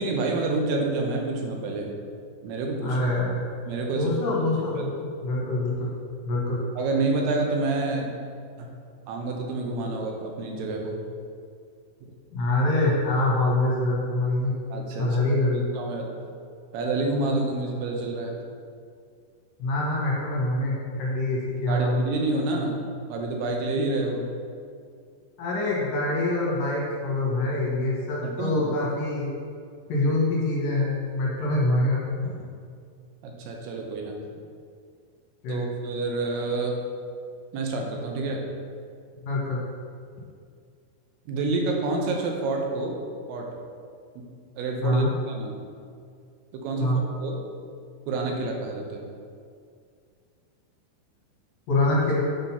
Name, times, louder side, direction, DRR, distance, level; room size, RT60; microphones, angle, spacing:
voice 1, 0.0-1.9 2.4-3.0 3.7-4.1 4.8-4.9 6.8-8.1 8.6-8.7 9.1-11.0 14.7-15.2 15.8-16.1 16.7-18.4 20.6-20.7 21.7-24.3 28.2-28.7 33.2-34.2 35.5-36.8 37.5-38.4 41.3-43.0 43.3-43.5 44.2-44.3 44.6-45.6 46.5-47.4 48.1-49.0, right 3 dB, 80° right, 1 dB, 2.7 m, -28 dB
voice 2, 2.8-3.4 4.0-5.9 6.2-6.6 12.3-14.5 15.0-15.7 19.6-22.1 25.4-29.3 29.9-32.3 35.4-35.6 39.2-39.6 44.8-45.1 46.8-47.0 51.7-52.2, left 2 dB, 70° left, -4 dB, 2.5 m, -25 dB
7.1 x 3.8 x 5.5 m, 2.3 s
omnidirectional pair, 4.6 m